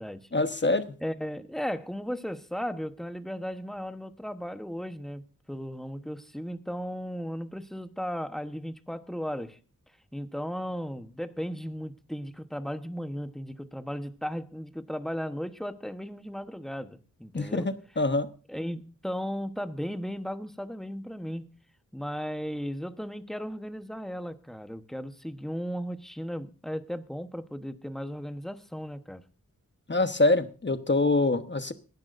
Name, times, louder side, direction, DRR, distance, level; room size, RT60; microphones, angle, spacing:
voice 1, 0.3-0.8 17.3-18.3 29.9-31.7, left 2 dB, 30° left, 1.1 m, -25 dB
voice 2, 1.0-9.6 10.1-17.7 18.5-21.5 21.9-29.2, equal, ahead, 1.0 m, -36 dB
22.0 x 10.5 x 2.6 m
wide cardioid pair, 55°, 35 cm